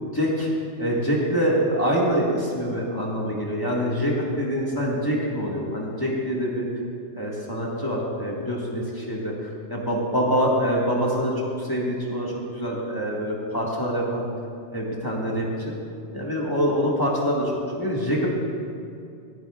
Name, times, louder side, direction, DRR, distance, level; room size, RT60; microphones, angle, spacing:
voice 1, 0.1-0.5 0.8-6.6 7.1-9.3 9.7-11.3 11.6-14.2 14.7-15.7 16.1-18.4, equal, 20° left, -4 dB, 1.6 m, -25 dB
19.5 x 11.0 x 2.4 m, 2.5 s
omnidirectional pair, 1.2 m